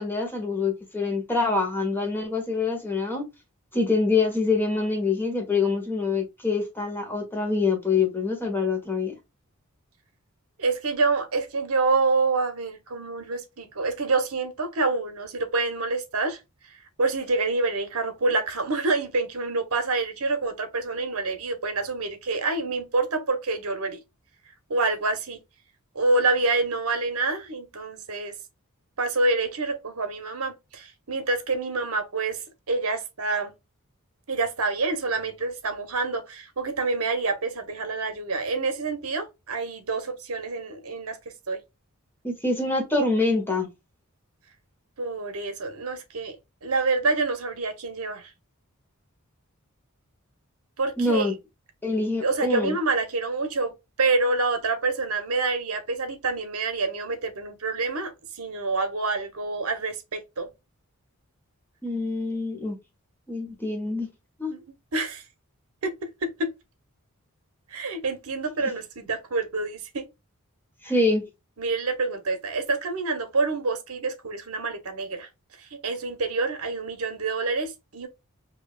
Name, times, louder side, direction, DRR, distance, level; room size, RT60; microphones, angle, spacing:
voice 1, 0.0-3.2 3.7-9.1 42.2-43.7 51.0-51.3 51.8-52.8 61.8-62.8 63.3-64.1 64.4-64.5 68.6-68.7 70.8-71.2, left 3 dB, 10° left, 1.2 m, -25 dB
voice 2, 10.6-16.4 17.0-24.0 24.7-25.4 25.9-28.3 29.0-32.4 32.7-33.5 34.3-41.2 41.5-41.6 45.0-46.4 46.6-48.3 50.8-51.3 52.2-53.7 54.0-58.1 58.4-60.5 64.5-64.6 64.9-65.2 65.8-65.9 66.2-66.5 67.7-70.1 71.6-75.3 75.8-78.1, right 3 dB, 75° right, 0.9 m, -27 dB
4.7 x 2.8 x 2.3 m
head